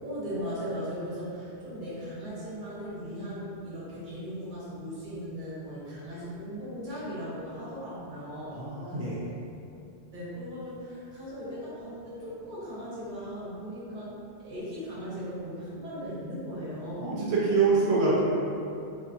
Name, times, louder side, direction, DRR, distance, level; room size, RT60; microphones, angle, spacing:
voice 1, 0.0-8.6 10.1-17.1, equal, 50° right, -9 dB, 1.0 m, -38 dB
voice 2, 8.5-9.2 17.0-18.2, right 4 dB, 90° right, -7 dB, 0.8 m, -25 dB
2.4 x 2.3 x 2.5 m, 2.6 s
omnidirectional pair, 1.1 m